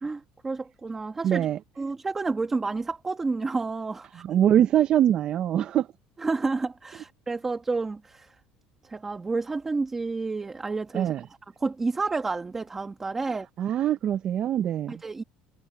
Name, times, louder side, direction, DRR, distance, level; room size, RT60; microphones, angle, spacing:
voice 1, 0.0-1.5 1.8-4.2 6.2-8.3 8.8-11.1 11.6-13.5 14.9-15.2, right 3 dB, 15° right, 1.2 m, -30 dB
voice 2, 1.2-1.6 4.2-5.9 10.9-11.2 13.6-14.9, right 10 dB, 40° right, 0.5 m, -23 dB
cardioid pair, 145°, 2 cm